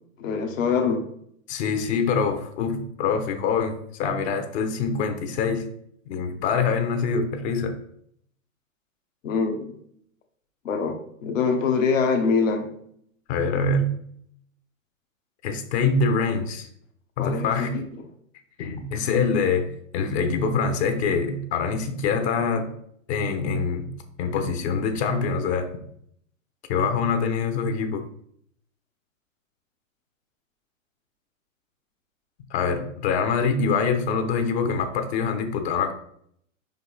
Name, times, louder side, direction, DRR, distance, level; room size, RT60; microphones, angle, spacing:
voice 1, 0.2-1.1 9.2-9.6 10.6-10.9 11.2-12.7 17.2-17.8, left 5 dB, 75° left, 4 dB, 1.4 m, -24 dB
voice 2, 1.5-5.7 6.1-7.8 13.3-14.0 15.4-16.7 17.2-17.8 18.6-19.7 19.9-22.7 23.1-23.9 24.2-25.7 26.7-28.0 32.5-35.9, left 5 dB, 55° left, 7 dB, 1.0 m, -24 dB
5.5 x 4.9 x 4.1 m, 0.66 s
hypercardioid pair, 115°, 40 cm